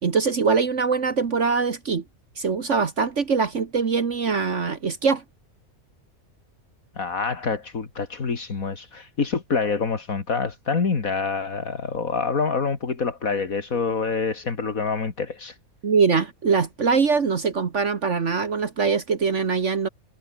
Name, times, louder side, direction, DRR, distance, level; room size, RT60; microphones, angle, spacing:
voice 1, 0.0-2.0 2.4-5.2 15.8-19.9, right 5 dB, 55° right, 1.8 m, -22 dB
voice 2, 7.0-15.6, left 5 dB, 75° left, 2.7 m, -26 dB
omnidirectional pair, 1.5 m